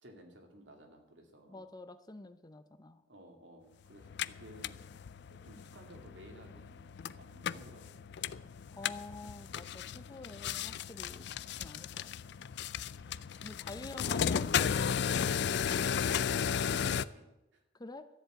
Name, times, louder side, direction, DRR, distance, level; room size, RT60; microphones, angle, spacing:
voice 1, 0.0-1.6 3.1-4.9 5.3-8.6 11.3-11.5 13.9-14.1 16.4-17.6, right 1 dB, 75° right, 3 dB, 2.6 m, -56 dB
voice 2, 1.5-3.0 8.7-11.3 11.6-12.1 13.4-15.3 17.7-18.1, left 2 dB, 20° left, 11 dB, 0.7 m, -48 dB
sound 1, 4.0-17.0, left 7 dB, 65° left, 0.4 m, -35 dB
13.0 x 7.3 x 9.0 m, 0.92 s
head